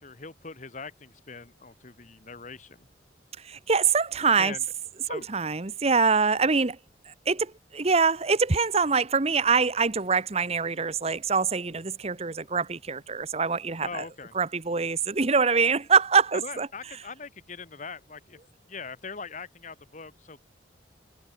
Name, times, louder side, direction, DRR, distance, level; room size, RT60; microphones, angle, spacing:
voice 1, 0.0-2.9 4.4-4.6 5.1-5.3 13.8-14.3 16.4-18.4 18.7-20.4, left 4 dB, 40° left, 1.4 m, -41 dB
voice 2, 3.4-4.5 5.1-6.8 7.1-14.0 14.3-16.7, right 5 dB, 35° right, 1.0 m, -24 dB
head